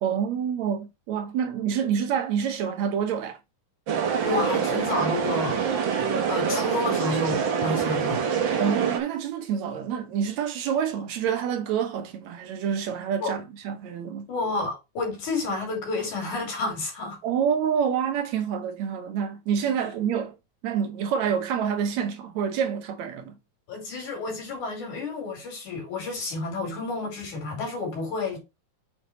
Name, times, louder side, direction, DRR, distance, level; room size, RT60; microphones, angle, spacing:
voice 1, 0.0-3.4 8.6-14.3 17.2-20.4 20.6-23.4, right 7 dB, 70° right, 2.1 m, -27 dB
sound 1, 3.9-9.0, right 7 dB, 55° right, 1.5 m, -25 dB
voice 2, 4.2-5.8 6.3-8.3 13.2-13.3 14.3-17.2 23.7-28.4, left 3 dB, 75° left, 4.6 m, -30 dB
7.6 x 4.5 x 4.3 m
omnidirectional pair, 3.5 m